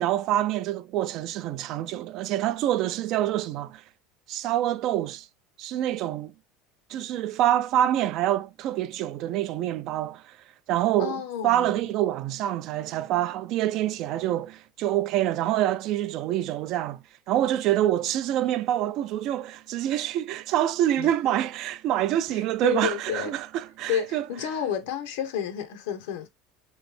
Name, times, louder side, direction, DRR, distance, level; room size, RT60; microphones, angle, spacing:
voice 1, 0.0-3.8 4.3-5.3 5.6-6.3 6.9-10.4 10.7-24.2, right 12 dB, 50° right, 0.3 m, -26 dB
voice 2, 11.0-11.9 21.0-21.1 22.6-23.3 23.9-26.3, left 8 dB, 90° left, 0.7 m, -30 dB
3.0 x 2.7 x 3.0 m
cardioid pair, 150°, 0 cm